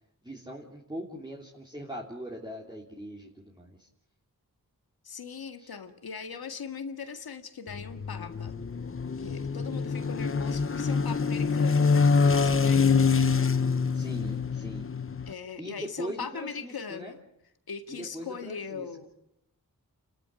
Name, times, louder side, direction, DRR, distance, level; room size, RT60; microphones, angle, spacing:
voice 1, 0.2-3.9 5.6-5.7 13.9-14.9 15.6-17.1 18.1-18.9, right 1 dB, 10° right, -2 dB, 3.3 m, -41 dB
voice 2, 5.0-8.5 9.2-12.9 15.3-17.2 17.7-19.1, left 6 dB, 85° left, 7 dB, 2.0 m, -40 dB
sound 1, 7.7-15.3, left 5 dB, 35° left, 0.9 m, -25 dB
30.0 x 13.5 x 8.9 m, 0.78 s
wide cardioid pair, 70°, 36 cm